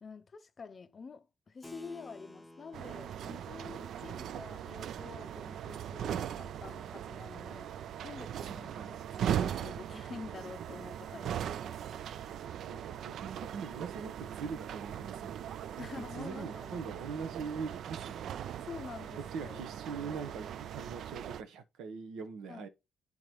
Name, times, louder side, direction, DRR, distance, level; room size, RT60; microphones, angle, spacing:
voice 1, 0.0-7.8 8.0-12.1 15.8-17.0 18.6-19.6 22.5-22.7, left 5 dB, 30° left, 0.5 m, -48 dB
Keyboard (musical), 1.6-7.6, left 1 dB, 5° left, 0.8 m, -56 dB
sound 1, 2.7-21.4, right 9 dB, 60° right, 0.3 m, -39 dB
voice 2, 12.6-15.5 15.8-15.9 16.2-18.3 19.3-22.7, right 5 dB, 80° right, 1.0 m, -42 dB
10.5 x 3.8 x 3.0 m
cardioid pair, 135°, 0 cm